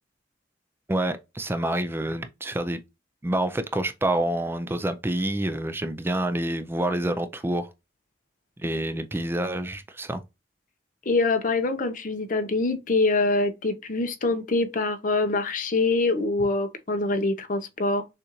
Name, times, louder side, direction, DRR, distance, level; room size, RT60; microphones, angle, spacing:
voice 1, 0.9-2.8 3.2-7.7 8.6-10.2, right 1 dB, 15° right, 0.4 m, -27 dB
voice 2, 11.1-18.0, left 3 dB, 45° left, 0.7 m, -24 dB
6.7 x 2.5 x 3.0 m
head